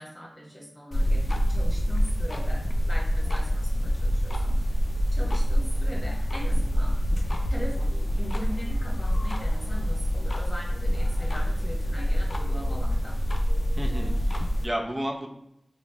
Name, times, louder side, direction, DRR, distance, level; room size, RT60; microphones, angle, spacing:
voice 1, 0.0-4.8 5.1-6.9 7.5-13.2, equal, 25° left, -3 dB, 1.3 m, -41 dB
sound 1, 0.9-14.7, equal, 60° left, 0.4 m, -26 dB
voice 2, 13.8-15.3, equal, 25° right, 0 dB, 0.7 m, -32 dB
3.9 x 2.2 x 3.4 m, 0.79 s
wide cardioid pair, 55°, 0 cm